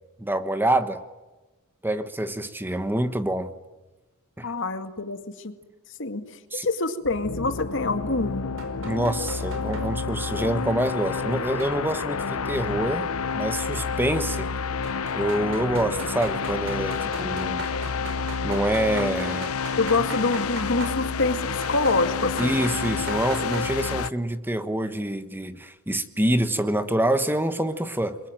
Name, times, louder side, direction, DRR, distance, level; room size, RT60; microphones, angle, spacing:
voice 1, 0.2-1.0 1.8-3.5 4.4-4.5 6.5-6.7 8.8-13.1 13.3-14.5 15.1-17.6 18.4-19.5 22.4-28.2, right 1 dB, 10° right, 10 dB, 1.2 m, -26 dB
voice 2, 4.4-5.5 6.0-8.5 19.8-22.6, left 3 dB, 60° left, 8 dB, 2.1 m, -26 dB
Cinematic Monster Drone in C, 7.0-24.1, left 5 dB, 85° left, 0.8 m, -29 dB
sound 1, 8.6-9.9 11.6-12.2 13.8-13.9 14.8-21.0 21.6-22.0 22.4-23.6, right 3 dB, 65° right, 5.0 m, -39 dB
29.5 x 22.5 x 9.1 m, 1.1 s
head